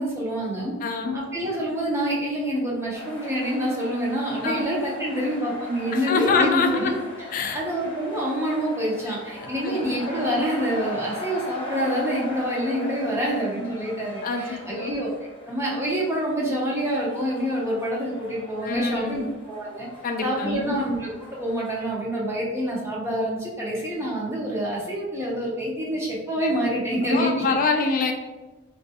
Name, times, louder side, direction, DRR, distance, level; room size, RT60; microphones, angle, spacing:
voice 1, 0.0-0.7 1.1-6.9 7.5-15.1 15.4-19.9 20.2-27.5 27.8-28.1, equal, 15° right, -4 dB, 0.6 m, -27 dB
voice 2, 0.8-1.2 4.4-4.6 5.9-6.9 7.3-7.6 9.1-9.2 9.4-10.1 14.2-14.9 18.6-19.3 20.0-20.8 27.1-28.1, left 4 dB, 45° left, 5 dB, 0.4 m, -25 dB
sound 1, 2.9-21.8, left 1 dB, 25° left, 0.7 m, -39 dB
3.4 x 2.4 x 2.6 m, 1.2 s
head